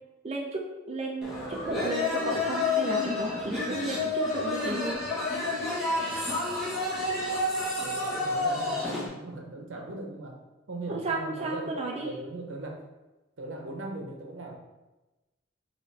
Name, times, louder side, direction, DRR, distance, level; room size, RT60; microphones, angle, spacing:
voice 1, 0.2-5.0 10.9-12.1, right 2 dB, 30° right, 0 dB, 0.4 m, -34 dB
sound 1, 1.2-9.1, left 2 dB, ahead, 1.0 m, -29 dB
voice 2, 7.8-10.4 10.7-12.9 13.4-14.6, right 2 dB, 75° right, 2 dB, 0.8 m, -39 dB
5.8 x 2.5 x 3.2 m, 1.1 s
head